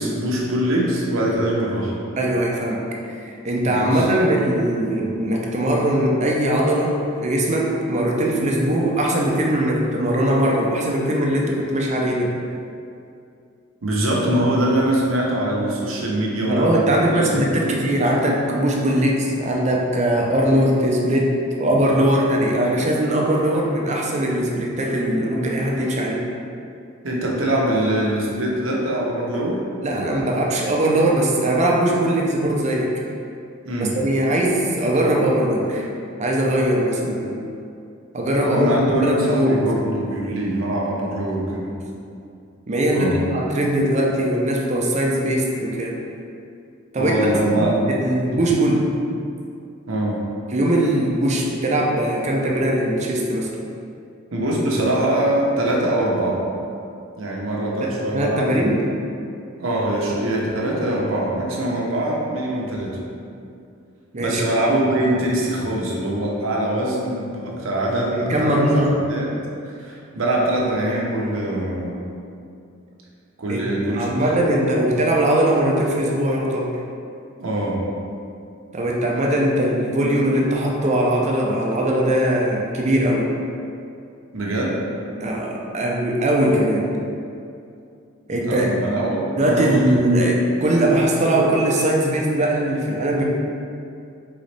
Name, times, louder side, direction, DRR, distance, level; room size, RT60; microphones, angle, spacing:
voice 1, 0.0-2.0 3.6-4.1 13.8-17.7 27.0-29.6 33.7-33.9 38.4-41.7 42.9-43.2 47.0-47.8 48.3-48.4 49.9-50.2 54.3-56.4 57.2-58.9 59.6-63.0 64.2-68.8 69.1-69.3 69.7-72.0 73.4-74.1 77.4-77.8 84.3-84.8 88.5-89.9, right 1 dB, 70° right, -3 dB, 0.8 m, -23 dB
voice 2, 2.2-2.8 3.2-12.3 16.5-21.3 21.6-26.2 29.8-32.9 33.8-35.9 36.2-37.4 38.1-39.7 40.0-40.1 42.7-46.0 46.9-47.2 47.5-48.9 50.5-53.5 57.8-58.8 64.1-64.4 68.0-69.0 73.5-73.6 74.0-76.7 78.7-83.3 85.2-86.9 88.3-88.7 89.4-93.2, right 1 dB, 35° right, -1 dB, 0.5 m, -20 dB
4.0 x 3.9 x 3.3 m, 2.5 s
head